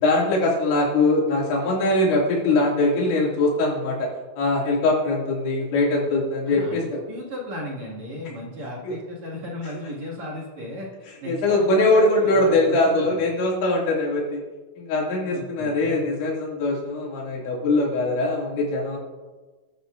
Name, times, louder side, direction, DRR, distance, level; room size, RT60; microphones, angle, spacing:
voice 1, 0.0-4.1 4.4-6.9 8.8-8.9 11.3-14.4 14.8-19.0, left 2 dB, 80° left, -3 dB, 4.9 m, -22 dB
voice 2, 6.5-10.9 11.2-13.2 15.3-15.9, left 1 dB, 45° right, -4 dB, 2.9 m, -35 dB
20.5 x 11.5 x 2.6 m, 1.3 s
omnidirectional pair, 5.2 m